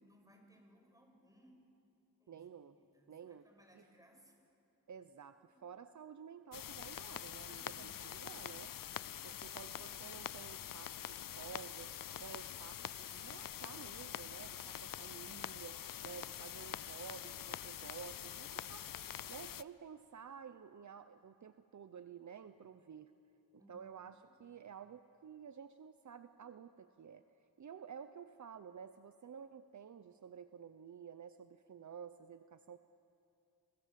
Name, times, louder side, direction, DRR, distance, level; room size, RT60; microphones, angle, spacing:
voice 1, 0.0-1.7 2.2-4.4 5.5-5.6 7.5-8.3 9.2-9.9 23.6-23.8, equal, 10° right, 2 dB, 6.3 m, -66 dB
voice 2, 2.3-2.8 3.1-3.4 3.8-3.9 4.9-8.7 9.2-18.8 19.3-23.1 23.7-24.1 24.4-27.2 27.6-32.8, right 7 dB, 55° right, 10 dB, 0.8 m, -52 dB
sound 1, 6.5-19.6, left 10 dB, 70° left, 0.6 m, -45 dB
29.5 x 24.5 x 7.6 m, 2.8 s
wide cardioid pair, 90°, 35 cm